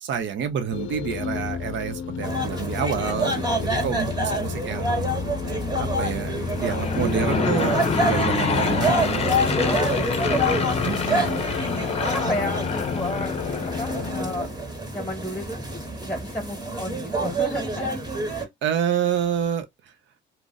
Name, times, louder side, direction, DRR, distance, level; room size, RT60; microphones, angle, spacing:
voice 1, 0.0-5.1 5.7-9.3 10.8-11.5 18.6-19.7, right 8 dB, 70° right, 0.7 m, -28 dB
sound 1, 0.7-14.5, left 7 dB, 80° left, 0.5 m, -32 dB
sound 2, 2.2-18.4, right 1 dB, 20° right, 1.2 m, -28 dB
Aircraft / Engine, 6.4-14.4, left 4 dB, 30° left, 0.6 m, -27 dB
voice 2, 6.8-7.3 7.5-8.0 9.6-10.7 12.0-14.5 14.9-15.6 15.9-18.5, left 1 dB, 10° left, 1.2 m, -32 dB
2.4 x 2.1 x 3.9 m
cardioid pair, 90°, 20 cm